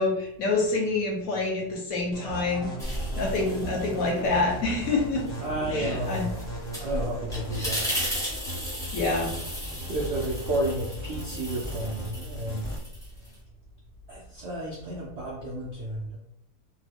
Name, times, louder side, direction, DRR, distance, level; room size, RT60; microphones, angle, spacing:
voice 1, 0.0-5.2 5.7-6.3 8.9-9.4, left 3 dB, 65° left, -1 dB, 1.0 m, -27 dB
sound 1, 2.1-12.8, right 1 dB, 20° left, 0.8 m, -38 dB
sound 2, 2.3-10.1, left 1 dB, 80° left, 1.2 m, -43 dB
sound 3, 2.8-4.3 4.7-13.4, equal, 5° left, 0.3 m, -36 dB
voice 2, 5.4-6.3 6.8-7.9 9.9-12.7 14.1-16.2, right 1 dB, 70° right, -3 dB, 0.6 m, -31 dB
2.9 x 2.1 x 3.3 m, 0.80 s
omnidirectional pair, 1.8 m